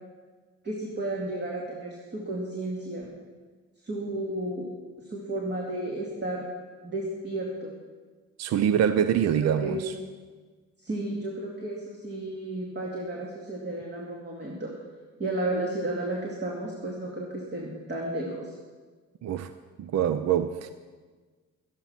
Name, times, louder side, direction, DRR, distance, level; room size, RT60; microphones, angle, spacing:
voice 1, 0.6-3.1 3.8-4.7 5.0-6.4 6.8-7.7 9.4-9.8 10.8-14.7 15.2-18.6, right 1 dB, 35° right, 2.3 m, -33 dB
voice 2, 8.4-9.9 19.2-19.5 19.8-20.7, right 9 dB, 60° right, 0.6 m, -25 dB
13.0 x 11.5 x 5.9 m
cardioid pair, 90°, 30 cm